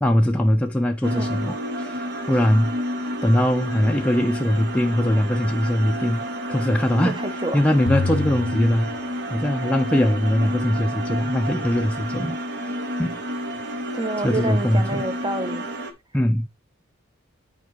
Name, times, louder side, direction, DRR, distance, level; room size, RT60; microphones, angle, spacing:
voice 1, 0.0-2.8 3.2-6.2 6.5-7.2 7.5-8.9 9.3-12.7 13.0-13.2 14.2-15.1 16.1-16.5, equal, 5° left, 0.4 m, -21 dB
sound 1, 1.0-15.9, equal, 55° right, 1.0 m, -30 dB
voice 2, 7.2-7.6 10.4-10.6 13.9-15.7, right 2 dB, 20° right, 0.7 m, -28 dB
sound 2, 7.9-9.7, left 3 dB, 75° left, 0.7 m, -28 dB
9.6 x 4.5 x 3.1 m
head